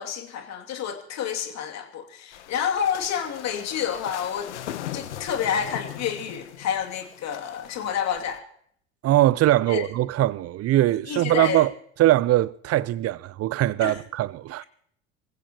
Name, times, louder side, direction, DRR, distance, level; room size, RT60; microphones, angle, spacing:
voice 1, 0.0-4.5 4.9-8.4 9.7-9.9 11.1-11.7 13.8-14.0 14.6-14.7, left 8 dB, 50° left, 2.7 m, -29 dB
sound 1, 2.3-8.4, left 11 dB, 80° left, 1.1 m, -39 dB
voice 2, 9.0-11.7 12.0-14.6, right 14 dB, 45° right, 0.7 m, -21 dB
25.5 x 16.0 x 3.0 m
hypercardioid pair, 70°, 34 cm